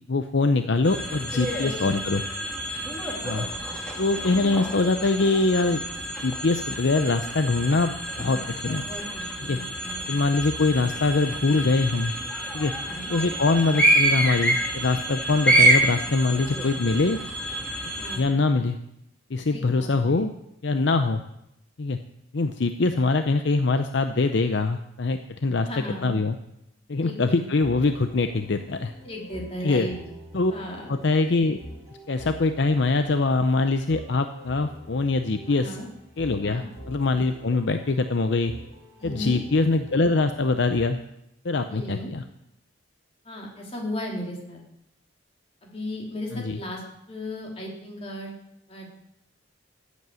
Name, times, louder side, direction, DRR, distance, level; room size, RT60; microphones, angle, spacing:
voice 1, 0.1-2.2 3.2-3.5 4.0-5.8 6.2-8.8 9.4-9.6 10.1-12.1 12.5-12.7 13.1-17.2 18.1-18.8 19.3-20.3 20.6-21.2 21.8-22.0 22.3-25.7 26.0-26.4 26.9-28.9 29.6-29.9 30.3-30.5 30.9-31.6 32.1-35.8 36.2-38.5 39.0-41.0 41.4-42.2 46.3-46.6, left 3 dB, 60° left, 8 dB, 0.6 m, -23 dB
sound 1, 0.8-18.2, right 1 dB, 5° left, 2.2 m, -27 dB
voice 2, 1.6-1.9 3.0-3.5 8.7-10.1 12.8-13.1 18.0-18.3 19.5-20.2 25.6-26.1 27.0-27.4 29.0-30.0 30.5-30.9 35.5-35.9 36.4-36.7 39.0-39.4 41.7-42.1 43.2-44.6 45.6-48.3 48.7-48.9, left 1 dB, 30° left, -1 dB, 3.4 m, -36 dB
sound 2, 27.6-40.8, equal, 15° right, 5.4 m, -45 dB
14.5 x 8.4 x 7.7 m, 0.84 s
head